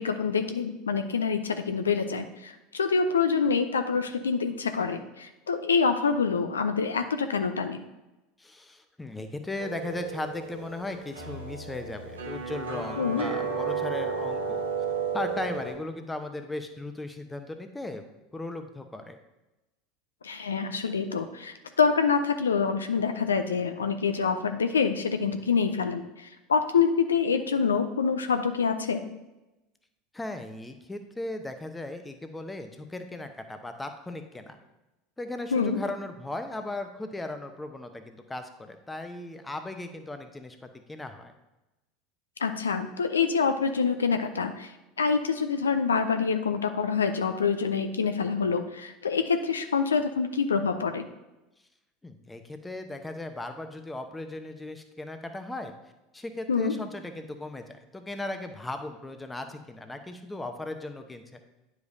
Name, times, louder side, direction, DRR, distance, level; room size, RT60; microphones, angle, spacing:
voice 1, 0.0-7.8 13.0-13.3 20.2-29.1 35.5-35.8 42.4-44.7 45.0-51.1 56.5-56.7, left 5 dB, 85° left, 8 dB, 0.4 m, -26 dB
voice 2, 8.4-14.7 15.1-18.0 18.3-19.2 30.1-34.6 35.2-40.6 40.9-41.3 52.0-55.7 56.1-61.4, left 2 dB, 10° left, 7 dB, 0.8 m, -37 dB
sound 1, 9.6-15.7, right 5 dB, 85° right, 1.2 m, -33 dB
9.3 x 5.1 x 2.7 m, 1.0 s
hypercardioid pair, 80°, 0 cm